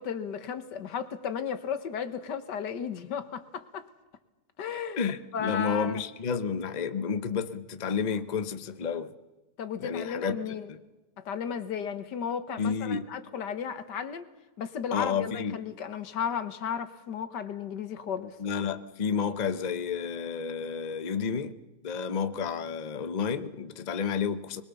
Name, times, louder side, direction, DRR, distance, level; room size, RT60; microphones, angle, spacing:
voice 1, 0.0-3.9 4.6-5.0 5.3-6.0 9.6-10.7 11.3-14.3 14.6-18.4, left 7 dB, 90° left, 1.9 m, -34 dB
voice 2, 5.0-9.1 9.8-10.4 10.7-10.8 12.6-13.1 14.9-15.6 18.4-21.6 21.8-24.6, left 6 dB, 35° left, 0.8 m, -31 dB
22.0 x 21.5 x 7.0 m
omnidirectional pair, 1.8 m